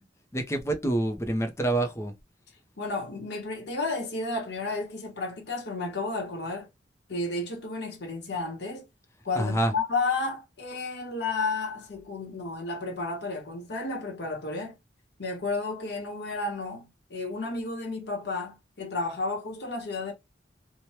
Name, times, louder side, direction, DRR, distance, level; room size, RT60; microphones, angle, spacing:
voice 1, 0.3-2.1 9.3-9.7, right 1 dB, 15° left, 0.5 m, -27 dB
voice 2, 2.8-6.7 7.1-8.8 9.2-14.7 15.2-20.1, left 3 dB, 65° left, 0.9 m, -32 dB
2.8 x 2.1 x 3.1 m
head